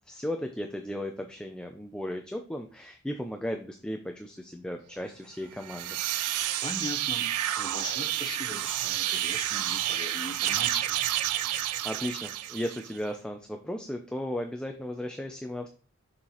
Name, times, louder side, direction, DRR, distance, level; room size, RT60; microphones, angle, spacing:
voice 1, 0.1-6.0 11.8-15.7, left 1 dB, 5° left, 4 dB, 0.4 m, -35 dB
sound 1, 5.5-13.0, right 13 dB, 90° right, 0.4 m, -30 dB
voice 2, 6.6-10.9, left 2 dB, 20° left, 4 dB, 0.9 m, -39 dB
6.5 x 5.7 x 3.0 m, 0.39 s
head